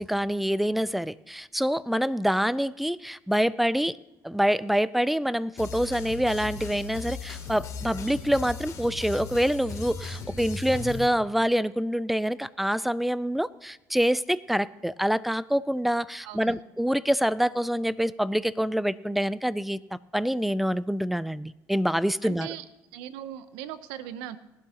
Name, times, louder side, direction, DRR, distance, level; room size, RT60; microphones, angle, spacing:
voice 1, 0.0-4.0 4.2-22.5, equal, ahead, 19 dB, 0.3 m, -26 dB
sound 1, 5.6-11.1, left 5 dB, 45° left, 2.8 m, -37 dB
voice 2, 16.2-16.6 22.2-22.6 22.9-24.4, right 11 dB, 90° right, 14 dB, 0.6 m, -39 dB
19.0 x 11.5 x 2.9 m, 0.95 s
supercardioid pair, 85°, 8 cm